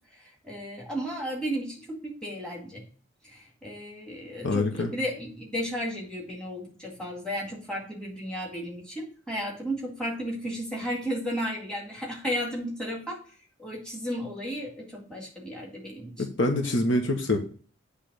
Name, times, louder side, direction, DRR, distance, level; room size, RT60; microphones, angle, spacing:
voice 1, 0.4-2.8 3.2-13.2 13.6-16.1, equal, 5° left, -3 dB, 2.0 m, -34 dB
voice 2, 4.4-4.9 16.2-17.4, left 2 dB, 65° left, 3 dB, 1.1 m, -25 dB
8.2 x 3.3 x 6.6 m, 0.41 s
head